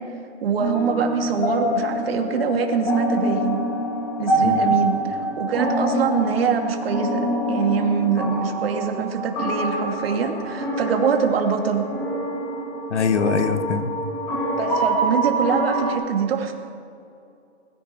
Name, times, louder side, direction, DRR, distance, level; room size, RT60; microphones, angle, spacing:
voice 1, 0.4-3.6 4.2-7.2 7.5-11.9 14.6-16.5, right 6 dB, 55° right, 3 dB, 2.4 m, -24 dB
sound 1, 0.6-15.9, right 1 dB, 15° left, 5.3 m, -25 dB
voice 2, 4.4-4.7 12.9-13.9, left 7 dB, 75° left, 10 dB, 1.4 m, -23 dB
21.0 x 15.5 x 4.4 m, 2.5 s
hypercardioid pair, 170°, 35 cm